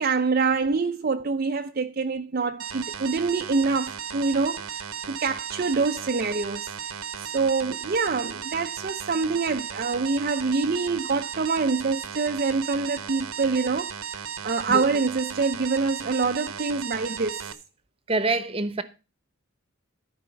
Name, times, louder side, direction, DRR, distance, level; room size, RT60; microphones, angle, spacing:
voice 1, 0.0-17.5, right 4 dB, 40° right, 0.5 m, -26 dB
sound 1, 2.6-17.5, right 8 dB, 85° right, 1.0 m, -35 dB
voice 2, 18.1-18.8, right 2 dB, 25° right, 0.9 m, -25 dB
13.5 x 5.0 x 6.8 m
head